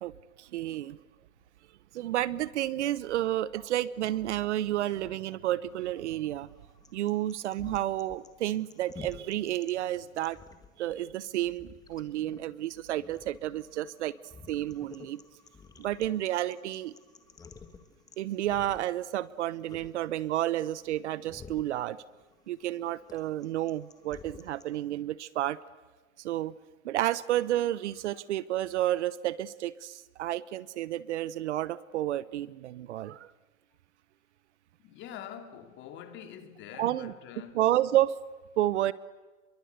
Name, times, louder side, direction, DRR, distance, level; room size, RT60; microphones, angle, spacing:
voice 1, 0.4-1.0 1.9-6.5 6.9-10.4 10.8-14.1 14.5-15.2 15.8-16.9 18.2-22.0 22.5-25.6 26.2-26.5 26.8-33.3 36.8-37.1 37.6-38.2 38.6-38.9, right 13 dB, 55° right, 0.9 m, -31 dB
sound 1, 5.7-24.8, left 5 dB, 10° left, 1.6 m, -52 dB
voice 2, 34.8-37.6, left 9 dB, 25° left, 2.8 m, -45 dB
30.0 x 23.0 x 8.1 m
hypercardioid pair, 145°, 41 cm